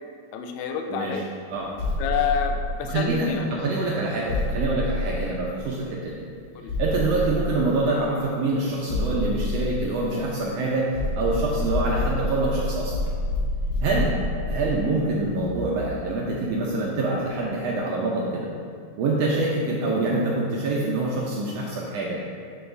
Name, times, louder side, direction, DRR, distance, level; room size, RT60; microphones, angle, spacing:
voice 1, 0.3-1.2 2.0-3.5 6.5-6.7, left 7 dB, 80° left, 4 dB, 1.7 m, -28 dB
voice 2, 0.9-1.2 1.5-1.7 2.8-6.2 6.8-13.1 13.8-18.5 19.0-22.2, right 2 dB, 80° right, -4 dB, 1.5 m, -25 dB
sound 1, 1.8-3.3 4.3-5.9 6.7-8.0 8.9-10.5 10.9-16.2, left 1 dB, 35° left, 1.6 m, -28 dB
7.0 x 6.9 x 2.6 m, 2.1 s
omnidirectional pair, 3.6 m